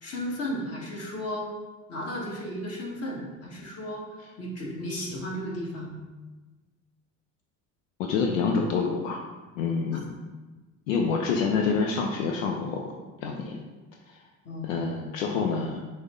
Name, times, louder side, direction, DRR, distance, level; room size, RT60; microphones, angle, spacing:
voice 1, 0.0-1.5 1.9-6.0 9.9-10.0 14.4-14.9, equal, 40° left, -2 dB, 1.4 m, -34 dB
voice 2, 8.0-9.2 9.6-10.2 10.9-12.9 13.2-13.6 14.1-14.2 14.6-15.8, left 5 dB, 85° left, 1 dB, 0.5 m, -27 dB
6.0 x 2.2 x 3.5 m, 1.2 s
hypercardioid pair, 70°, 39 cm